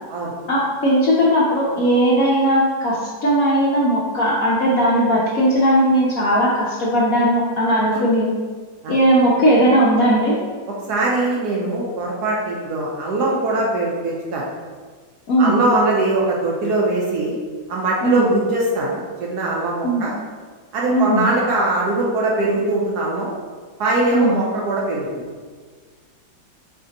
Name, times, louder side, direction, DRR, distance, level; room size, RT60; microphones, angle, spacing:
voice 1, 0.5-8.3 8.9-10.4 15.3-15.6 18.0-18.3 19.8-20.1 20.9-21.2 24.1-24.4, equal, 65° left, -5 dB, 0.9 m, -17 dB
voice 2, 10.9-14.5 15.4-17.4 17.7-20.1 20.7-23.3 23.8-25.2, right 2 dB, 70° right, -3 dB, 1.0 m, -21 dB
3.8 x 3.4 x 3.9 m, 1.5 s
omnidirectional pair, 2.1 m